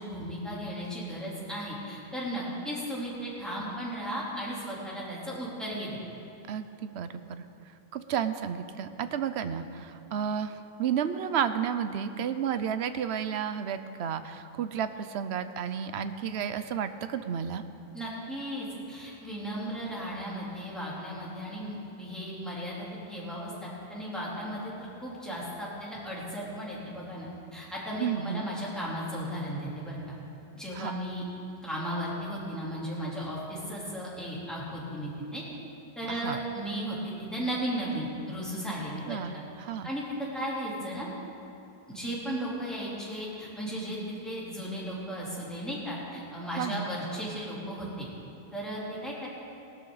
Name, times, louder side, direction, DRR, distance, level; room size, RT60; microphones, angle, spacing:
voice 1, 0.0-6.0 17.9-30.1 30.5-31.2 31.6-35.4 36.0-39.4 39.8-41.1 41.9-44.0 44.2-48.1 48.5-49.3, equal, ahead, -8 dB, 3.5 m, -35 dB
voice 2, 6.5-7.4 7.9-17.6 28.0-28.4 30.7-31.0 36.1-36.4 39.1-39.9 46.6-46.9, right 8 dB, 85° right, 10 dB, 0.9 m, -32 dB
18.0 x 12.5 x 4.0 m, 2.8 s
omnidirectional pair, 1.1 m